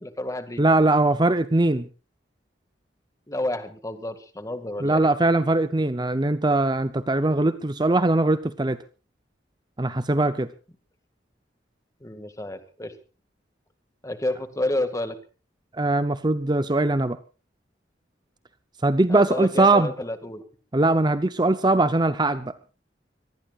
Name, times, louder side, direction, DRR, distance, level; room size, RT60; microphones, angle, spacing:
voice 1, 0.0-0.6 3.3-5.1 12.0-13.0 14.0-15.2 19.1-20.5, left 1 dB, 20° left, 10 dB, 2.0 m, -30 dB
voice 2, 0.6-1.9 4.8-8.8 9.8-10.5 15.8-17.2 18.8-19.9 20.7-22.5, right 2 dB, 25° right, 12 dB, 0.7 m, -21 dB
25.5 x 19.0 x 2.5 m, 0.34 s
head